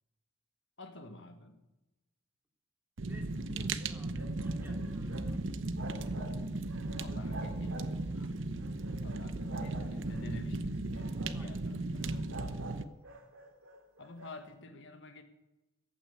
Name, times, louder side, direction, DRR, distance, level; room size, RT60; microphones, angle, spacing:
voice 1, 0.8-1.6 6.9-8.5 9.0-12.0 14.0-15.2, left 2 dB, 60° left, 6 dB, 1.5 m, -49 dB
voice 2, 3.0-5.5 11.3-11.6 12.4-12.7, equal, 10° right, 1 dB, 2.7 m, -57 dB
Fire, 3.0-12.8, right 2 dB, 65° right, 0.8 m, -36 dB
sound 1, 3.3-5.3 5.6-6.4 6.7-8.1 8.6-10.3 10.8-11.4 12.0-14.4, right 2 dB, 85° right, 2.3 m, -48 dB
15.0 x 9.0 x 8.4 m, 1.0 s
head